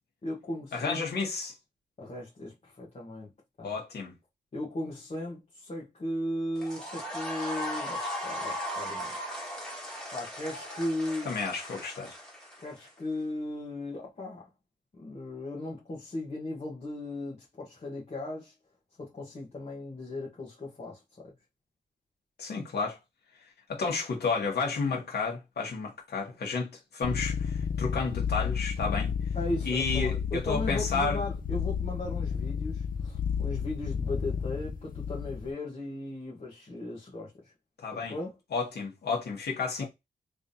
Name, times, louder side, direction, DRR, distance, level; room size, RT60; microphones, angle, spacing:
voice 1, 0.2-1.1 2.0-3.3 3.6-3.7 4.5-9.3 10.1-11.3 12.6-14.5 15.0-18.5 19.0-21.3 29.3-37.5 38.0-38.3 39.8-39.9, left 1 dB, 40° left, 1.3 m, -37 dB
voice 2, 0.7-1.5 3.6-4.1 11.2-12.1 22.4-23.0 23.7-29.1 29.6-31.2 37.8-38.1 38.5-39.9, left 4 dB, 75° left, 1.7 m, -31 dB
sound 1, 6.6-12.9, equal, ahead, 2.0 m, -37 dB
sound 2, 27.0-35.5, left 7 dB, 55° left, 0.7 m, -32 dB
3.5 x 3.4 x 2.7 m
wide cardioid pair, 115°, 17 cm